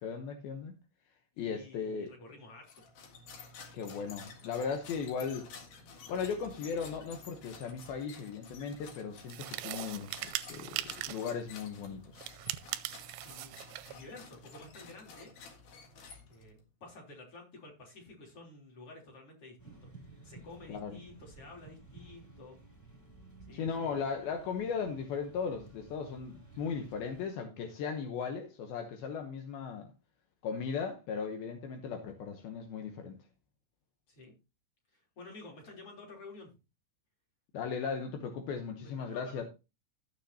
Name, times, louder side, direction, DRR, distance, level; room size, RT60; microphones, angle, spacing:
voice 1, 0.0-0.8 1.4-2.1 3.7-5.5 6.1-12.2 20.7-21.0 23.5-29.9 30.4-33.2 37.5-39.4, left 6 dB, 75° left, 2.2 m, -37 dB
voice 2, 1.3-2.9 13.2-13.5 13.9-15.3 16.3-19.9 20.2-22.6 23.5-24.0 34.1-34.3 34.9-36.5 38.8-39.4, left 2 dB, 30° left, 3.7 m, -51 dB
sound 1, 2.6-16.6, left 4 dB, 55° left, 2.5 m, -52 dB
sound 2, 9.3-11.3 12.2-14.0, right 16 dB, 80° right, 2.8 m, -40 dB
sound 3, 19.6-27.3, right 3 dB, 5° left, 1.5 m, -55 dB
15.5 x 6.9 x 2.8 m
omnidirectional pair, 5.8 m